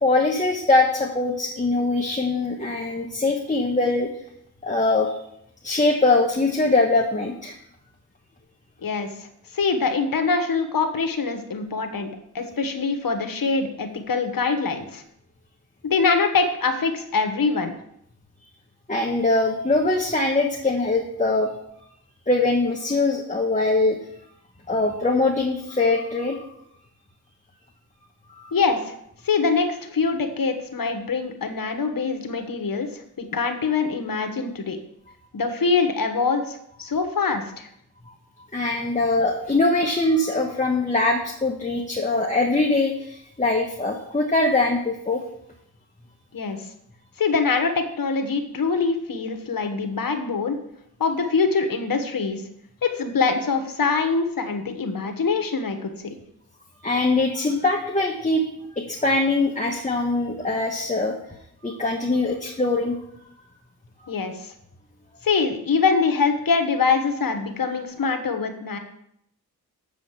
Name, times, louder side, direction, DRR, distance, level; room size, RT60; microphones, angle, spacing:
voice 1, 0.0-4.1 4.6-5.1 5.6-7.5 18.9-21.5 22.3-24.0 24.7-26.5 28.4-28.5 38.5-45.2 56.8-58.4 58.8-61.2 61.6-63.0, left 2 dB, 20° left, 0 dB, 1.2 m, -22 dB
voice 2, 9.5-12.1 12.3-15.0 15.8-17.7 28.5-28.9 29.2-34.8 35.3-37.7 46.3-46.6 47.2-50.6 51.0-52.4 52.8-56.2 64.1-64.5 65.2-68.8, left 4 dB, 60° left, 7 dB, 1.3 m, -24 dB
7.7 x 5.0 x 7.4 m, 0.75 s
cardioid pair, 50°, 38 cm